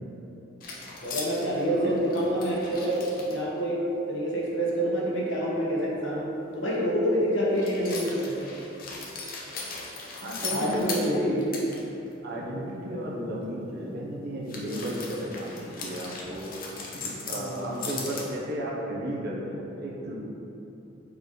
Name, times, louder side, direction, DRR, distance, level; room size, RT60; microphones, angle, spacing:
sound 1, 0.6-3.4 7.5-11.8 12.1-12.2 14.5-18.2, left 3 dB, 50° left, 0.8 m, -38 dB
voice 1, 1.0-3.8 4.1-6.3 6.5-8.4 10.5-11.4 17.3-17.9, equal, 75° left, -5 dB, 1.4 m, -27 dB
voice 2, 1.7-2.4 10.2-11.5 12.2-16.6 16.9-20.1, equal, 55° right, -4 dB, 1.0 m, -33 dB
4.6 x 4.0 x 5.2 m, 3.0 s
head